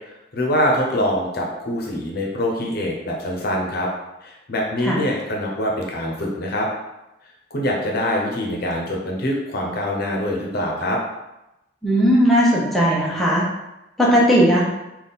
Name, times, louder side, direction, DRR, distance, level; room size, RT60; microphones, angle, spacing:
voice 1, 0.1-3.9 4.2-6.7 7.5-11.0, left 1 dB, 55° left, -1 dB, 0.8 m, -24 dB
voice 2, 11.8-13.4 14.0-14.6, equal, ahead, -6 dB, 0.7 m, -17 dB
3.6 x 2.4 x 4.0 m, 0.93 s
head